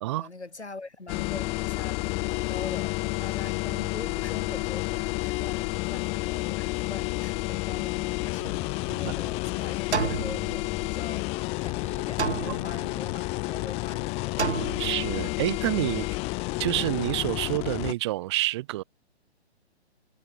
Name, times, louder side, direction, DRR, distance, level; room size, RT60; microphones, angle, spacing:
voice 1, 0.1-11.3 11.6-14.6, left 3 dB, 80° left, 3.2 m, -43 dB
sound 1, 1.1-17.9, left 25 dB, 20° left, 1.3 m, -30 dB
sound 2, 8.4-9.3 9.9-11.2 12.2-13.2 14.4-15.4, right 6 dB, 80° right, 0.8 m, -32 dB
voice 2, 14.8-16.1 16.6-18.8, right 17 dB, 25° right, 1.0 m, -28 dB
figure-of-eight pair, 130°, 33 cm